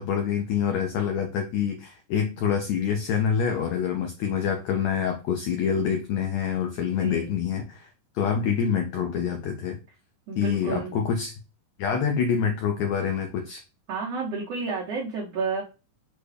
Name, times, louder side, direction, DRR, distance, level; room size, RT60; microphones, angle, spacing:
voice 1, 0.0-7.9 8.1-9.8 10.4-11.3 11.8-13.6, left 7 dB, 90° left, 4 dB, 1.5 m, -26 dB
voice 2, 6.9-7.3 10.3-10.9 13.9-15.6, right 4 dB, 75° right, -3 dB, 1.4 m, -31 dB
6.4 x 2.3 x 3.2 m, 0.30 s
omnidirectional pair, 3.9 m